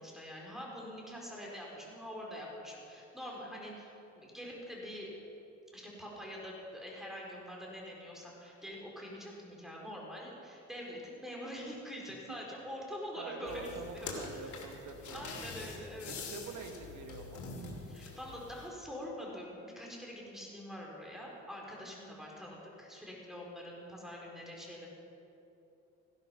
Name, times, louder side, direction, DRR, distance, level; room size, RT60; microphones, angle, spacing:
voice 1, 0.0-5.1 5.7-13.7 13.9-14.6 15.1-16.4 17.9-24.9, equal, ahead, -3 dB, 4.4 m, -45 dB
voice 2, 13.2-15.2 15.8-17.4 21.7-21.9, right 5 dB, 85° right, 5 dB, 1.6 m, -46 dB
sound 1, 13.4-18.7, left 4 dB, 75° left, 2.8 m, -45 dB
16.0 x 12.0 x 5.9 m, 2.9 s
cardioid pair, 90°, 30 cm